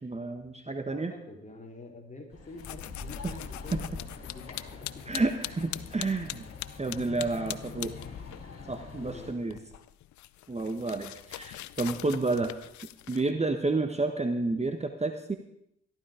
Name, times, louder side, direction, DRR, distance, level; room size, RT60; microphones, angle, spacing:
voice 1, 0.0-1.1 3.2-3.3 3.7-3.8 5.1-6.5 6.8-7.9 8.7-9.6 10.5-12.5 13.1-15.4, right 3 dB, 20° right, 7 dB, 1.3 m, -30 dB
voice 2, 0.9-5.1 5.7-5.9 8.8-9.7 12.0-12.1, left 2 dB, 25° left, 1 dB, 3.5 m, -48 dB
sound 1, 2.3-9.3, left 4 dB, 55° left, 4.1 m, -44 dB
sound 2, 2.6-8.5 8.7-13.3, left 14 dB, 75° left, 0.6 m, -42 dB
14.0 x 12.0 x 5.0 m, 0.76 s
supercardioid pair, 65°, 29 cm